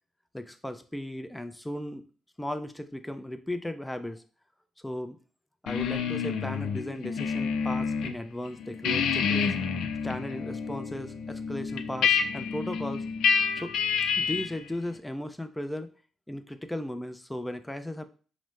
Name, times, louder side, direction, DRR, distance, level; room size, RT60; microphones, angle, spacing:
voice 1, 0.3-2.0 2.4-4.2 4.8-5.2 5.6-9.6 10.0-13.0 13.6-13.8 14.1-15.9 16.3-18.1, left 1 dB, 5° left, 9 dB, 0.5 m, -36 dB
sound 1, 5.7-8.1 8.5-14.6, left 6 dB, 80° left, 0.4 m, -28 dB
4.9 x 2.1 x 3.1 m, 0.38 s
cardioid pair, 90°, 0 cm